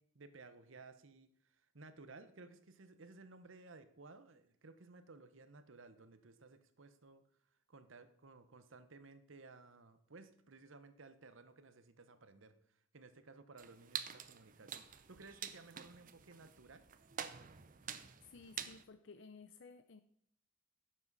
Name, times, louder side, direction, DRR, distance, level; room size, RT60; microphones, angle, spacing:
voice 1, 0.0-7.2 7.7-16.8, right 3 dB, 65° right, 10 dB, 0.9 m, -58 dB
sound 1, 13.6-18.8, right 8 dB, 40° right, 0.6 m, -48 dB
voice 2, 18.2-20.0, left 4 dB, 60° left, 10 dB, 0.5 m, -56 dB
11.0 x 7.5 x 4.0 m, 0.68 s
head